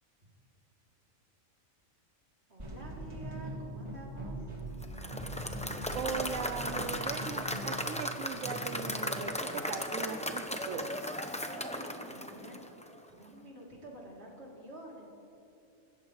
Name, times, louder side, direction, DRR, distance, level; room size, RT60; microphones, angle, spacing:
voice 1, 2.5-4.4 11.4-15.1, right 1 dB, 50° right, -3 dB, 3.4 m, -49 dB
sound 1, 2.6-9.3, right 1 dB, 20° right, 2.0 m, -42 dB
Applause / Crowd, 4.8-13.0, left 1 dB, 5° left, 0.6 m, -37 dB
voice 2, 5.9-10.9, right 7 dB, 75° right, 8 dB, 1.0 m, -39 dB
25.0 x 14.0 x 3.2 m, 2.8 s
omnidirectional pair, 1.4 m